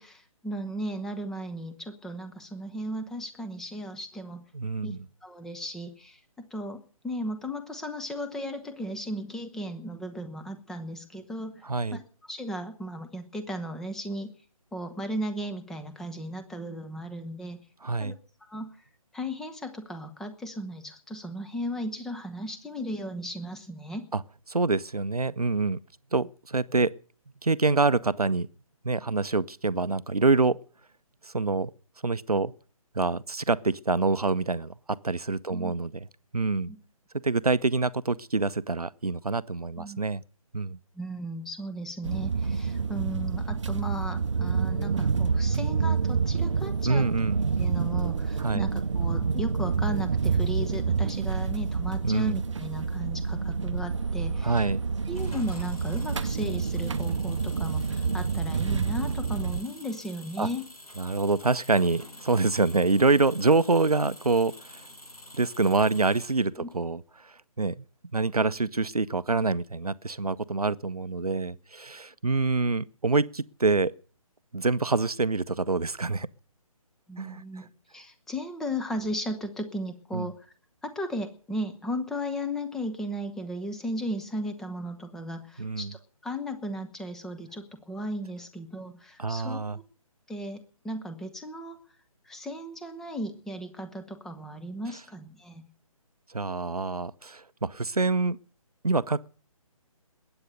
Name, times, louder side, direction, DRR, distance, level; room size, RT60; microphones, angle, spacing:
voice 1, 0.0-4.4 4.8-4.9 5.2-6.2 6.5-11.6 11.9-14.3 14.7-17.6 18.0-18.2 18.5-18.8 19.1-24.0 35.5-35.8 36.7-36.8 39.8-40.0 41.0-47.1 47.6-54.7 55.1-60.6 66.6-66.7 77.1-80.5 80.8-89.6 90.3-91.8 92.3-95.7, equal, ahead, 0.8 m, -36 dB
voice 2, 4.5-5.0 11.6-12.0 17.8-18.2 24.1-24.2 24.5-25.8 26.1-26.9 27.4-28.5 28.8-30.6 31.2-31.7 32.0-32.5 32.9-36.1 36.3-36.7 37.2-40.2 40.5-40.8 46.8-47.5 48.4-48.7 52.0-52.4 54.4-54.8 60.4-60.5 61.0-64.8 65.3-67.8 68.1-73.9 74.5-76.3 77.2-77.6 80.1-80.3 85.6-85.9 89.2-89.8 96.3-98.4 98.8-99.3, right 3 dB, 85° right, 0.7 m, -26 dB
sound 1, 42.0-59.6, right 5 dB, 55° right, 0.7 m, -28 dB
Engine, 55.1-66.7, left 1 dB, 80° left, 6.1 m, -48 dB
21.0 x 9.0 x 6.7 m
figure-of-eight pair, 145°, 19 cm